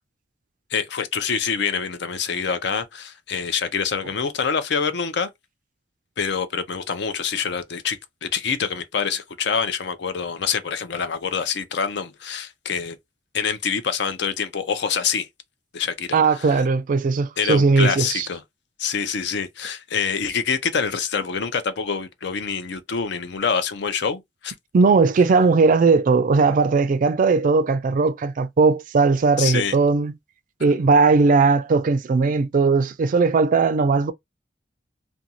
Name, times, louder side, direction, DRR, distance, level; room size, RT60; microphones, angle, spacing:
voice 1, 0.7-5.3 6.2-13.0 13.3-15.3 15.7-16.6 17.4-18.4 18.8-24.5 29.4-29.8, left 6 dB, 65° left, 0.5 m, -26 dB
voice 2, 16.1-18.3 24.7-30.1 30.6-34.1, right 4 dB, 45° right, 0.3 m, -18 dB
2.6 x 2.3 x 2.8 m
head